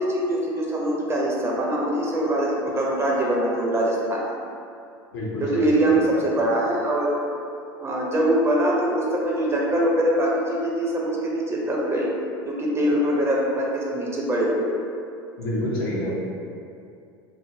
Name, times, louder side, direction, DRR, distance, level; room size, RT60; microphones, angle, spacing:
voice 1, 0.0-4.4 5.4-7.2 7.8-12.1 12.4-14.7, right 1 dB, 20° right, -3 dB, 0.5 m, -23 dB
voice 2, 5.1-6.0 15.4-16.1, left 1 dB, 75° left, -5 dB, 0.7 m, -28 dB
2.6 x 2.5 x 2.6 m, 2.5 s
hypercardioid pair, 85°, 13 cm